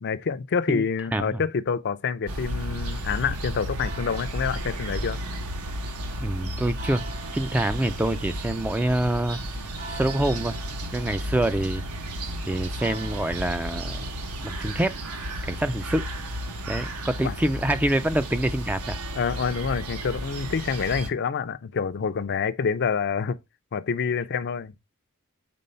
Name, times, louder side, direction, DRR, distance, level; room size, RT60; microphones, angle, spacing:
voice 1, 0.0-5.2 17.2-17.3 19.1-23.4 23.7-24.7, left 6 dB, 50° left, 0.5 m, -27 dB
sound 1, 2.3-21.1, right 1 dB, 75° right, 1.0 m, -33 dB
voice 2, 6.2-7.0 7.3-9.4 9.9-10.6 10.9-11.8 12.5-14.0 14.4-15.0 15.5-16.0 16.7-19.0, right 1 dB, 5° right, 0.3 m, -26 dB
5.3 x 3.9 x 5.5 m
head